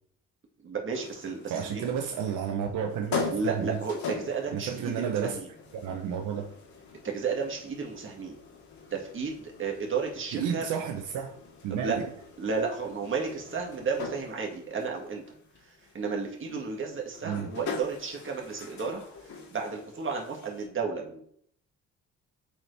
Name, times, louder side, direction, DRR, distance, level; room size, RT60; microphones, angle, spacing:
voice 1, 0.6-1.9 3.3-5.5 7.0-8.4 8.9-10.6 11.7-12.0 12.4-15.2 15.7-19.0 19.5-21.2, right 5 dB, 40° right, 1 dB, 1.8 m, -33 dB
sound 1, 0.9-20.7, left 5 dB, 70° left, 1.9 m, -42 dB
voice 2, 1.5-3.8 4.5-5.4 5.8-6.5 10.3-11.4 11.6-12.1 17.2-17.5, right 8 dB, 80° right, 4 dB, 0.8 m, -31 dB
7.5 x 4.4 x 3.3 m, 0.63 s
cardioid pair, 90°, 30 cm